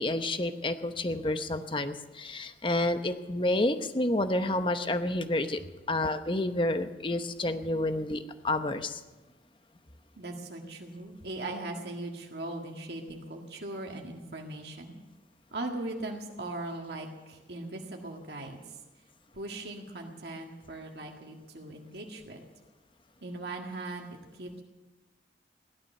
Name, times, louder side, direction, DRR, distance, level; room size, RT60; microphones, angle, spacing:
voice 1, 0.0-5.6 5.9-9.0, left 1 dB, 30° left, 9 dB, 0.9 m, -29 dB
voice 2, 10.2-14.9 15.5-18.6 19.3-22.4 23.2-24.1 24.3-24.6, right 2 dB, 70° right, 1 dB, 1.9 m, -39 dB
16.5 x 12.0 x 6.7 m, 1.2 s
head